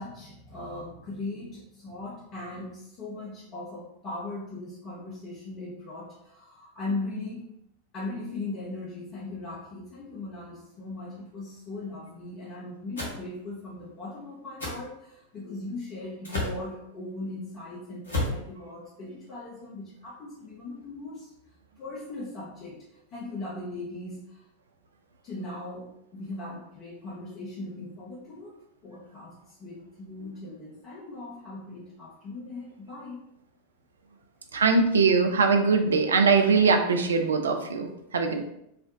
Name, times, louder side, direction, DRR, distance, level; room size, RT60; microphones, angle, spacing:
voice 1, 0.0-7.5 7.9-21.3 21.8-24.5 25.2-33.2, left 2 dB, 35° left, -7 dB, 0.7 m, -39 dB
sound 1, 13.0-13.2 14.6-14.8 16.2-16.6 18.0-18.4, left 1 dB, 70° left, 0.9 m, -30 dB
voice 2, 34.5-38.5, right 4 dB, 70° right, 4 dB, 0.4 m, -22 dB
3.2 x 2.1 x 2.5 m, 0.79 s
figure-of-eight pair, 90°, 0 cm